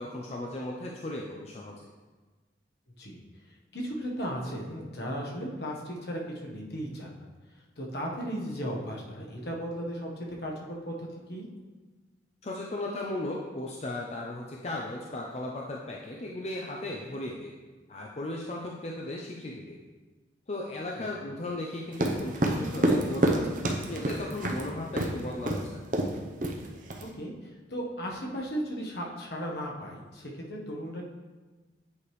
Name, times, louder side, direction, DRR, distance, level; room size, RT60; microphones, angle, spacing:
voice 1, 0.0-1.9 12.4-17.5 17.9-19.8 20.5-25.8, left 1 dB, 35° left, -2 dB, 0.5 m, -36 dB
voice 2, 3.7-7.2 7.8-11.4 27.2-27.3 27.7-31.0, equal, 60° left, -1 dB, 1.2 m, -36 dB
sound 1, 21.9-24.6 25.0-25.1 25.5-25.6 25.9-26.2 26.4-27.0, right 1 dB, 45° right, 0.7 m, -27 dB
8.4 x 4.9 x 3.2 m, 1.3 s
head